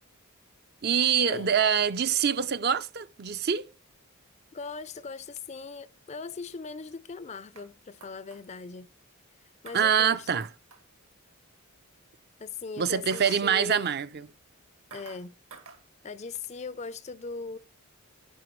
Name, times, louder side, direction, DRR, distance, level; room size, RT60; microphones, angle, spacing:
voice 1, 0.8-3.7 9.7-10.5 12.8-14.3, right 7 dB, 45° right, 0.6 m, -25 dB
voice 2, 4.5-8.9 9.6-10.4 12.4-13.9 14.9-15.3 16.0-17.6, left 4 dB, 30° left, 0.4 m, -39 dB
sound 1, 7.3-7.7 8.0-8.4 9.6-10.1 10.4-10.8 13.1-13.4 13.7-14.0 14.9-15.2 15.5-15.8, right 5 dB, 65° right, 1.9 m, -48 dB
11.0 x 10.0 x 3.1 m
head